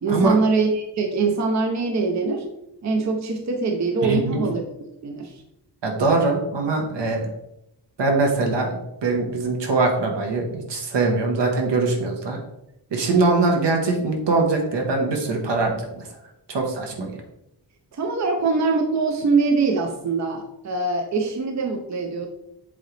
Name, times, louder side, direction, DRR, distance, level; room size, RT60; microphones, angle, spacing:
voice 1, 0.0-2.4 2.8-4.6 5.0-5.3 17.9-22.3, right 4 dB, 40° right, 3 dB, 0.6 m, -23 dB
voice 2, 4.0-4.4 5.8-7.2 8.0-12.4 12.9-16.0 16.5-17.1, right 3 dB, 75° right, 1 dB, 1.3 m, -22 dB
7.7 x 3.9 x 3.3 m, 0.85 s
wide cardioid pair, 155°, 43 cm